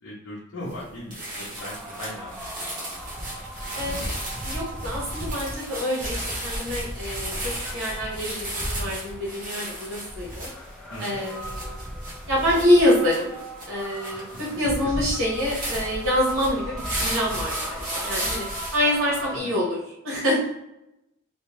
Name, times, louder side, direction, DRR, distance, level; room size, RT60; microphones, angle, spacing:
voice 1, 0.0-2.9 3.1-3.4 3.7-4.0 10.9-11.2 14.1-14.3 14.8-15.1 19.3-19.6, left 1 dB, 80° left, -6 dB, 0.7 m, -39 dB
sound 1, 0.7-0.8 1.1-18.8, right 1 dB, 40° right, 1.0 m, -35 dB
sound 2, 1.6-19.4, equal, ahead, 0.4 m, -36 dB
voice 2, 3.7-4.0 4.4-10.5 11.0-11.8 12.3-13.3 13.7-18.5 18.7-19.8 20.0-20.5, left 1 dB, 65° right, -5 dB, 1.0 m, -25 dB
2.7 x 2.1 x 3.0 m, 0.85 s
head